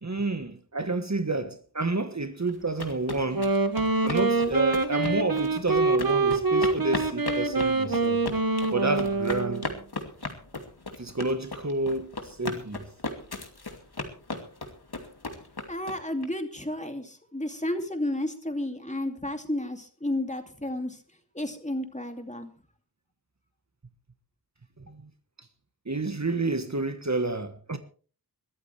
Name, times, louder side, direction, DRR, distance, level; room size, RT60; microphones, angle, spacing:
voice 1, 0.0-3.5 4.0-8.2 8.7-9.7 11.0-12.8 24.8-25.1 25.9-27.8, right 3 dB, 45° right, 1.4 m, -29 dB
sound 1, 2.5-16.3, left 3 dB, 75° left, 2.6 m, -36 dB
Wind instrument woodwind instrument, 3.2-9.7, right 3 dB, 60° right, 1.5 m, -25 dB
voice 2, 15.7-21.0 21.3-22.5, left 1 dB, 20° left, 2.6 m, -32 dB
22.5 x 14.0 x 3.4 m
wide cardioid pair, 50°, 39 cm